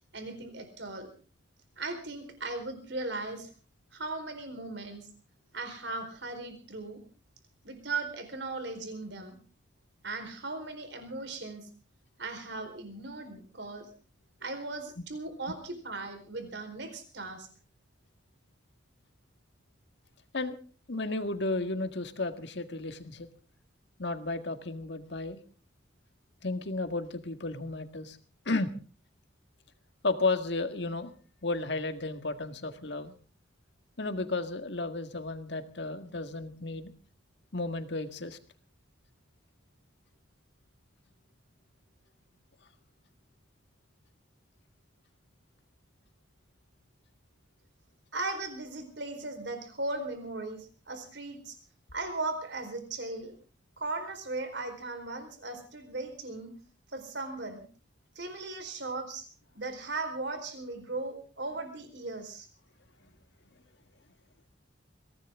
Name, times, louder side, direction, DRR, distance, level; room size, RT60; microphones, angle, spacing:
voice 1, 0.1-1.1 1.8-3.5 3.9-5.1 5.5-7.0 7.6-9.4 10.0-11.7 12.2-13.9 14.4-17.5 48.1-51.6 51.9-53.4 53.8-56.5 56.9-57.6 58.1-59.3 59.5-62.5, right 3 dB, 60° right, 7 dB, 4.4 m, -37 dB
voice 2, 20.9-23.3 24.0-25.4 26.4-28.2 28.5-28.7 30.0-31.1 31.4-33.1 34.0-36.9 37.5-38.4, left 3 dB, 55° left, 8 dB, 1.8 m, -33 dB
22.5 x 17.5 x 3.7 m, 0.38 s
head